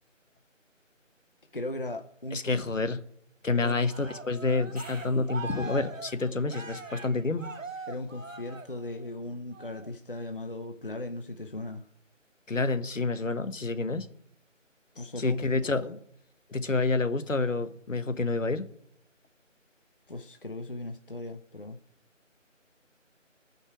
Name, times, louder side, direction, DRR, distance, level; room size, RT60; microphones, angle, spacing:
voice 1, 1.5-2.6 3.5-3.8 7.9-11.8 14.9-16.0 20.1-21.8, left 1 dB, 45° left, 0.7 m, -38 dB
voice 2, 2.3-3.0 3.4-7.5 12.5-14.1 15.2-15.9 16.5-18.6, left 3 dB, 80° left, 1.1 m, -28 dB
Cheering, 3.8-9.1 9.5-9.9, right 3 dB, 80° right, 1.3 m, -42 dB
sound 1, 4.6-5.5 10.2-10.3, equal, 30° right, 1.0 m, -53 dB
14.0 x 5.3 x 5.1 m
figure-of-eight pair, 175°, 38 cm